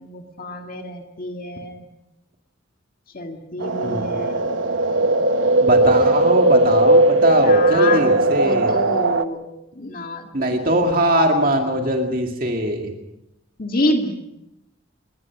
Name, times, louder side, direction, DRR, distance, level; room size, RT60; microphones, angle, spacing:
voice 1, 0.0-1.9 3.1-4.5 7.4-9.4 9.8-10.5 13.6-14.2, left 1 dB, 45° left, 3 dB, 2.0 m, -27 dB
sound 1, 3.6-9.2, right 2 dB, 75° right, 1.2 m, -17 dB
voice 2, 5.6-8.7 10.3-12.9, right 1 dB, 45° right, 2 dB, 2.3 m, -21 dB
26.5 x 21.0 x 6.1 m, 0.88 s
head